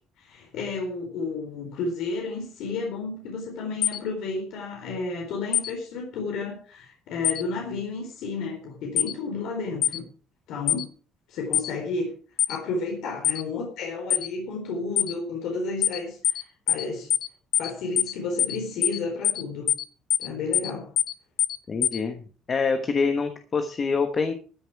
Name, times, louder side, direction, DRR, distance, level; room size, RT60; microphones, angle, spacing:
voice 1, 0.2-10.0 10.5-10.9 11.3-12.1 12.5-17.1 17.6-19.7 20.2-20.9, left 3 dB, 65° left, 1 dB, 4.2 m, -32 dB
sound 1, 3.8-4.0 5.5-5.7 7.2-7.4 9.0-9.1 9.8-10.0 10.7-10.8 11.5-11.7 12.4-12.6 13.2-13.4 14.1-14.3 15.0-15.1 15.8-16.0 16.2-16.4 16.7-16.8 17.1-17.3 17.5-17.7 18.0-18.1 18.4-18.6 18.8-19.0 19.2-19.4 19.7-19.8 20.1-20.3 20.5-20.7 21.0-21.1 21.4-21.6 21.8-22.0, left 11 dB, 50° left, 1.2 m, -23 dB
voice 2, 21.7-22.2 22.5-24.3, left 5 dB, 25° left, 7 dB, 1.2 m, -25 dB
14.0 x 10.0 x 4.7 m, 0.38 s
cardioid pair, 165°, 0 cm